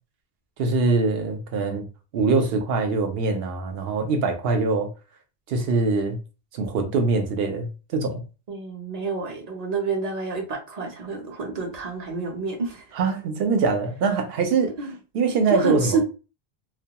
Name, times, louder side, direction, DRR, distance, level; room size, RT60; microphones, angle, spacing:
voice 1, 0.6-1.9 2.1-4.9 5.5-6.2 6.5-8.2 13.0-14.7 15.1-16.0, right 4 dB, 70° right, 0.8 m, -23 dB
voice 2, 8.5-12.8 14.8-14.9 15.5-16.0, right 4 dB, 45° right, 0.6 m, -28 dB
2.3 x 2.2 x 2.8 m
omnidirectional pair, 1.1 m